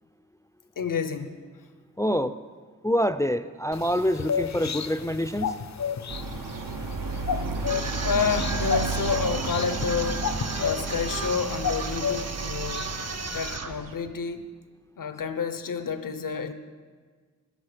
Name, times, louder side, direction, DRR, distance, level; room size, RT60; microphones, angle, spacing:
voice 1, 0.8-1.4 8.0-10.3 10.6-13.0 13.3-14.5 15.0-16.5, left 5 dB, 85° left, 10 dB, 0.8 m, -29 dB
voice 2, 2.0-2.4 2.8-5.6, equal, 10° left, 10 dB, 0.3 m, -26 dB
sound 1, 3.7-13.6, left 7 dB, 60° left, 0.5 m, -33 dB
sound 2, 6.1-13.9, right 3 dB, 80° right, 0.7 m, -33 dB
sound 3, 7.7-13.7, right 4 dB, 50° right, 1.0 m, -35 dB
13.0 x 11.0 x 5.0 m, 1.5 s
wide cardioid pair, 60°, 32 cm